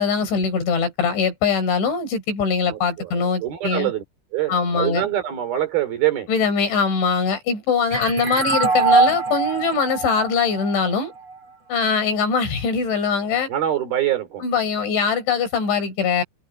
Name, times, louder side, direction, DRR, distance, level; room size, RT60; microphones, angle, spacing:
voice 1, 0.0-3.9 4.5-5.1 6.3-11.1 11.7-13.5 14.4-16.2, left 5 dB, 85° left, 7.2 m, -22 dB
voice 2, 2.7-4.0 4.3-6.3 13.5-14.4, right 12 dB, 55° right, 4.9 m, -24 dB
sound 1, 7.9-11.3, right 4 dB, 30° right, 4.7 m, -22 dB
omnidirectional pair, 5.2 m